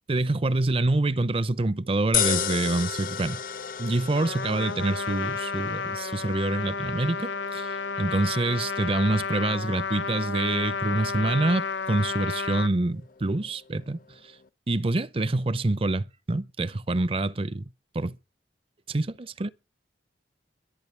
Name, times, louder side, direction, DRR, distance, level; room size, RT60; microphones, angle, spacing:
voice 1, 0.1-3.4 3.8-14.0 14.7-17.7 17.9-18.2 18.9-19.5, right 2 dB, 30° right, 0.6 m, -26 dB
sound 1, 2.1-14.5, left 9 dB, 50° left, 0.7 m, -36 dB
Trumpet, 4.1-12.7, left 5 dB, 90° left, 0.7 m, -31 dB
23.0 x 9.0 x 3.3 m
head